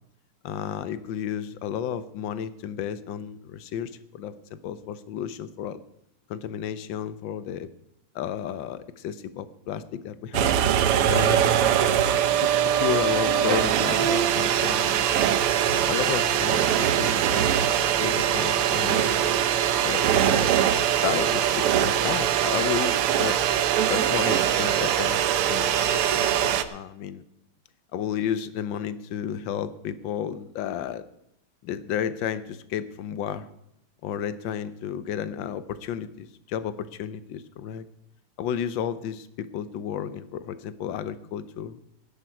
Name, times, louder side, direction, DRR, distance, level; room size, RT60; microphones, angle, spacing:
voice 1, 0.4-5.8 6.3-7.7 8.1-11.4 12.4-15.1 15.7-19.5 19.8-20.5 21.0-23.4 23.9-25.2 25.5-27.2 27.9-31.0 31.6-33.5 34.0-37.8 38.4-41.8, left 9 dB, 65° left, 13 dB, 1.4 m, -32 dB
sound 1, 10.3-26.6, right 10 dB, 85° right, 1.7 m, -22 dB
18.0 x 10.5 x 4.6 m, 0.79 s
omnidirectional pair, 2.4 m